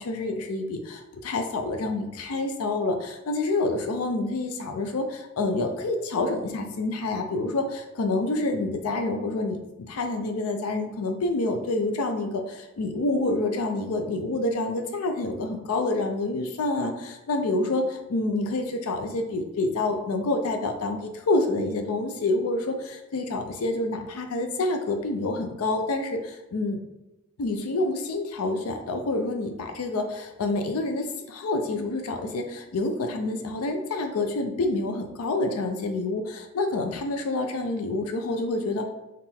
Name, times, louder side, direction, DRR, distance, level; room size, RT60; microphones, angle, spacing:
voice 1, 0.0-9.6 9.9-26.8 27.4-38.9, left 2 dB, 85° left, 5 dB, 0.4 m, -28 dB
3.7 x 2.5 x 4.2 m, 1.0 s
head